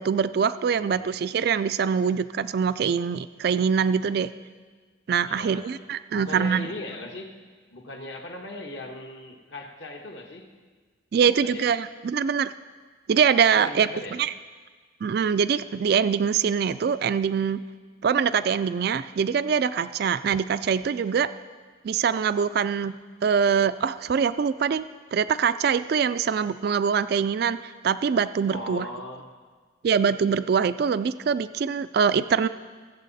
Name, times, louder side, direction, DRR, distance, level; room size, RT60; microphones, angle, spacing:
voice 1, 0.0-4.3 5.1-6.7 11.1-12.5 13.1-14.3 15.0-17.6 18.0-21.3 21.8-22.9 23.2-24.8 25.1-28.9 29.8-32.5, right 6 dB, 50° right, 14 dB, 0.3 m, -24 dB
voice 2, 0.7-1.1 5.2-5.7 6.1-7.4 7.7-10.5 11.2-11.7 13.5-14.2 28.5-29.3, left 1 dB, 65° left, 3 dB, 1.4 m, -38 dB
21.5 x 7.2 x 4.1 m, 1.5 s
head